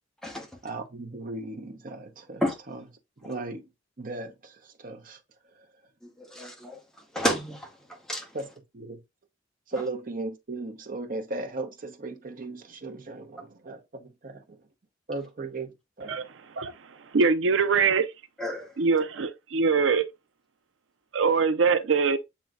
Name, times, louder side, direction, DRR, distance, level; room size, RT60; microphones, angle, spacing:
voice 1, 0.6-2.4 2.7-2.8 3.2-3.7 4.0-5.2 8.3-8.5 8.7-9.0 9.7-14.6 15.1-16.2, right 2 dB, 45° right, 0.8 m, -37 dB
voice 2, 6.0-6.8 7.1-7.7 8.1-8.3 18.4-18.7, equal, 5° left, 0.9 m, -30 dB
voice 3, 16.0-18.1 18.8-20.0 21.1-22.2, right 5 dB, 85° right, 0.5 m, -23 dB
7.5 x 3.1 x 2.3 m
head